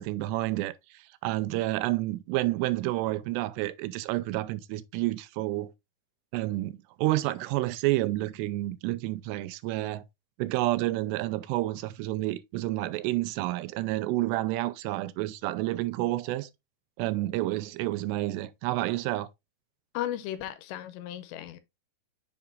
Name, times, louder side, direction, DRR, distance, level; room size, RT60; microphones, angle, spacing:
voice 1, 0.0-5.7 6.3-10.0 10.4-16.5 17.0-19.3, right 17 dB, 85° right, 2.6 m, -29 dB
voice 2, 19.9-21.6, left 12 dB, 80° left, 2.7 m, -35 dB
7.1 x 5.6 x 2.5 m
omnidirectional pair, 5.2 m